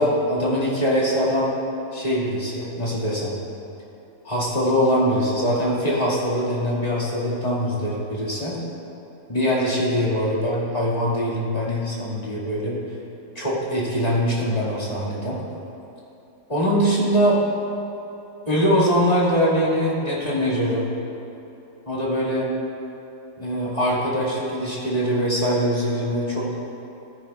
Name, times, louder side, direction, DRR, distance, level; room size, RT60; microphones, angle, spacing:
voice 1, 0.0-1.5 1.9-3.3 4.2-8.6 9.3-12.8 13.4-15.4 16.5-17.4 18.5-20.9 21.9-22.5 23.4-26.5, equal, 30° left, -7 dB, 2.1 m, -22 dB
13.5 x 10.5 x 2.3 m, 3.0 s
omnidirectional pair, 1.4 m